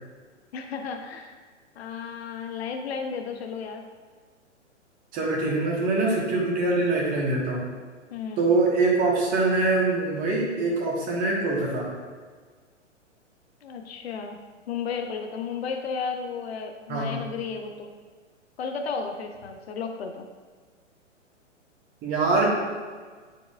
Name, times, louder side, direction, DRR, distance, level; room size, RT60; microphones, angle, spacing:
voice 1, 0.5-1.4 1.8-3.9 8.1-8.6 13.6-14.4 14.7-17.9 18.6-20.3, left 5 dB, 55° left, 5 dB, 0.7 m, -33 dB
voice 2, 5.1-7.6 8.4-11.9 16.9-17.1 22.0-22.5, right 3 dB, 20° right, -2 dB, 1.3 m, -24 dB
9.7 x 4.6 x 2.4 m, 1.5 s
figure-of-eight pair, 115°, 37 cm